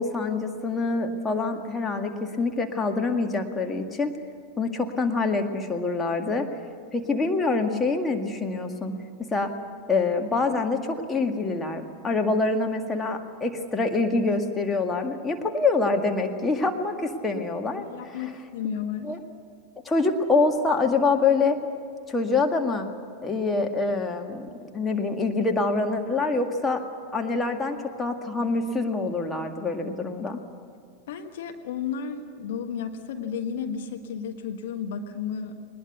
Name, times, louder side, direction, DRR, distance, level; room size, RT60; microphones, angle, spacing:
voice 1, 0.0-4.1 4.6-6.5 6.9-8.9 9.2-9.5 9.9-18.2 19.0-19.2 19.8-21.6 22.1-22.9 23.2-26.8 27.1-30.4, left 3 dB, 15° left, 4 dB, 2.0 m, -25 dB
voice 2, 17.8-19.1 31.1-35.6, left 7 dB, 55° left, 5 dB, 1.4 m, -33 dB
21.5 x 20.5 x 8.3 m, 2.3 s
figure-of-eight pair, 90°, 0 cm